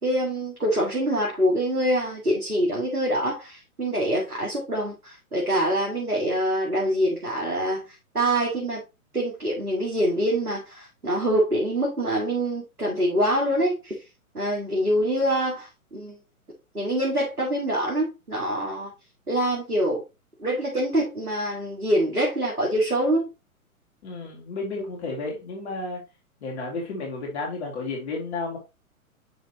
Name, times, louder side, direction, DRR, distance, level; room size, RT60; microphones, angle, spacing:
voice 1, 0.0-7.9 8.1-8.8 9.1-13.9 14.3-16.2 16.7-18.9 19.3-20.0 20.4-23.3, right 1 dB, 85° right, 2.1 m, -25 dB
voice 2, 24.0-26.0 26.4-28.6, left 3 dB, 50° left, 2.8 m, -32 dB
9.3 x 4.1 x 3.0 m
figure-of-eight pair, 115°, 44 cm